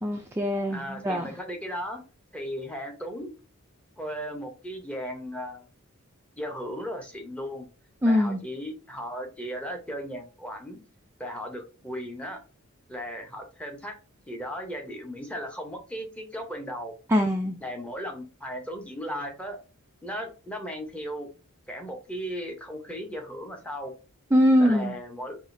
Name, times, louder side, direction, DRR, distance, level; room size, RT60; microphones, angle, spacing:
voice 1, 0.0-1.3 8.0-8.4 17.1-17.6 24.3-24.9, equal, 10° right, 2 dB, 0.4 m, -22 dB
voice 2, 0.7-2.0 2.3-3.3 4.0-5.6 6.3-7.7 8.0-10.8 11.2-12.4 12.9-13.9 14.3-16.9 17.6-19.6 20.0-21.3 21.7-23.9 24.6-25.4, equal, 5° left, 2 dB, 0.8 m, -36 dB
4.8 x 2.8 x 2.7 m, 0.33 s
head